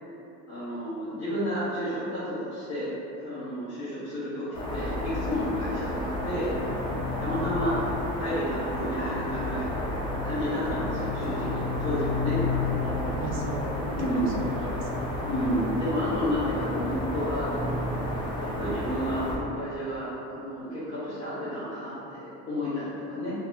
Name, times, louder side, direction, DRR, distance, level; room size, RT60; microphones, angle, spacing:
voice 1, 0.5-2.9 3.2-6.5 7.2-7.8 8.2-9.8 10.2-12.4 13.9-14.3 15.3-23.3, equal, 45° left, -13 dB, 1.1 m, -31 dB
sound 1, 4.5-19.4, left 2 dB, 15° left, 0.5 m, -31 dB
voice 2, 12.8-15.2, right 1 dB, 40° right, 0 dB, 0.4 m, -37 dB
4.0 x 2.8 x 2.5 m, 2.8 s
cardioid pair, 150°, 33 cm